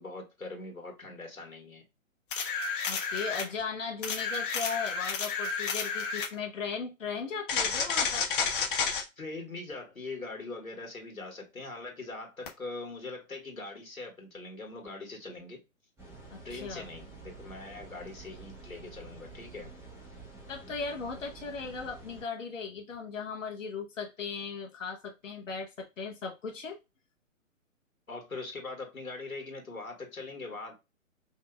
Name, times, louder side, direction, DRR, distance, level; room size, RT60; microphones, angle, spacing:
voice 1, 0.0-1.8 9.2-15.6 16.4-19.7 28.1-30.7, left 3 dB, 85° left, 1.7 m, -42 dB
sound 1, 2.3-3.5 4.0-6.3 7.5-9.0 12.5-12.6, left 5 dB, 40° left, 1.0 m, -31 dB
voice 2, 2.9-8.3 16.3-16.9 20.5-26.8, left 5 dB, 65° left, 1.0 m, -37 dB
sound 2, 16.0-22.2, right 3 dB, 5° right, 1.1 m, -49 dB
5.5 x 2.8 x 2.2 m
figure-of-eight pair, 130°, 41 cm